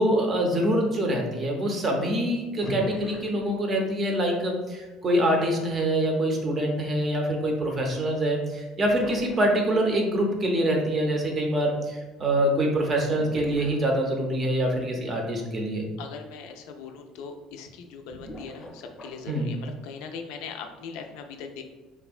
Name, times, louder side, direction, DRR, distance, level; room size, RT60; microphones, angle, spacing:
voice 1, 0.0-15.9 19.3-19.5, right 1 dB, 30° right, 1 dB, 0.5 m, -25 dB
sound 1, 2.6-4.1 8.0-8.1 8.9-10.0 13.2-14.4 15.8-15.9 16.3-16.4 18.1-19.3, right 1 dB, 30° left, 0.6 m, -40 dB
voice 2, 16.0-21.6, left 5 dB, 80° left, 5 dB, 0.3 m, -40 dB
3.5 x 2.1 x 2.3 m, 1.2 s
cardioid pair, 135°, 0 cm